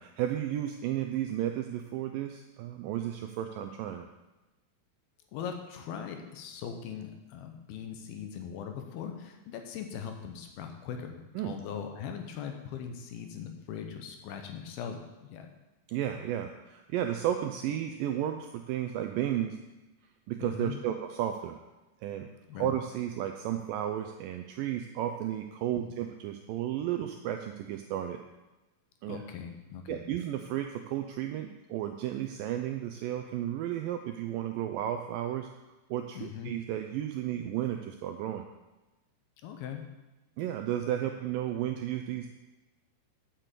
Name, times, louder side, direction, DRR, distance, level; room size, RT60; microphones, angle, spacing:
voice 1, 0.0-4.1 11.4-11.5 15.9-19.6 20.3-21.6 22.0-22.3 22.5-28.2 29.0-29.2 29.9-35.5 35.9-38.4 40.4-42.3, right 11 dB, 85° right, 6 dB, 2.0 m, -33 dB
voice 2, 5.3-15.5 20.4-20.8 22.5-22.7 25.8-25.9 29.1-30.0 36.1-36.5 39.4-39.8, left 7 dB, 80° left, 5 dB, 2.8 m, -40 dB
7.5 x 6.7 x 7.5 m, 1.1 s
omnidirectional pair, 4.5 m